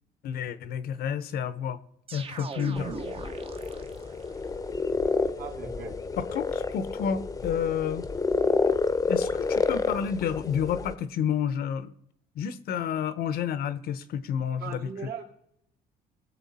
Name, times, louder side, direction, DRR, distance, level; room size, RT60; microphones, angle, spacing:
voice 1, 0.2-1.8 2.1-3.0 6.2-8.1 9.1-11.9 12.4-14.9, left 8 dB, 65° left, 14 dB, 0.8 m, -30 dB
sound 1, 2.1-4.3, right 5 dB, 35° right, 0.9 m, -39 dB
sound 2, 2.8-10.9, left 4 dB, 20° left, 0.8 m, -29 dB
voice 2, 5.4-6.0 14.6-15.2, right 6 dB, 60° right, 1 dB, 2.5 m, -38 dB
19.5 x 7.1 x 4.2 m, 0.75 s
cardioid pair, 110°, 17 cm